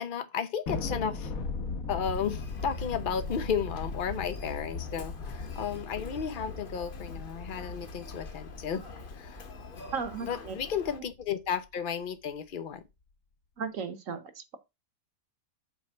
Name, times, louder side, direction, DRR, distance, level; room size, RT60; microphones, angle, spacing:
voice 1, 0.0-1.3 1.9-8.8 9.1-9.4 10.2-12.8, left 7 dB, 80° left, 0.4 m, -33 dB
Thunder, 0.7-11.3, left 3 dB, 60° left, 1.3 m, -39 dB
Human voice, 2.0-11.0, left 4 dB, 40° left, 1.0 m, -46 dB
voice 2, 9.9-10.5 13.6-14.6, right 6 dB, 55° right, 1.2 m, -35 dB
7.9 x 3.2 x 5.5 m
omnidirectional pair, 1.7 m